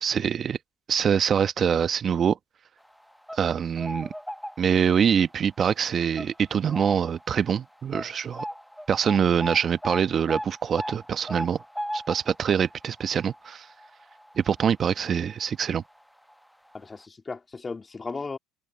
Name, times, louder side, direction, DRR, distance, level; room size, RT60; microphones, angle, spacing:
voice 1, 0.0-0.6 0.9-2.4 3.3-4.1 4.6-8.4 8.9-11.6 11.9-13.7 14.4-15.8, right 7 dB, 40° right, 1.1 m, -24 dB
sound 1, 3.0-5.0 5.4-5.6 6.2-7.3 7.5-7.6 7.9-15.0 15.3-15.4 16.3-16.4 16.7-16.8, equal, ahead, 1.0 m, -37 dB
voice 2, 16.7-18.4, left 4 dB, 20° left, 3.5 m, -36 dB
open air
hypercardioid pair, 80°, 0 cm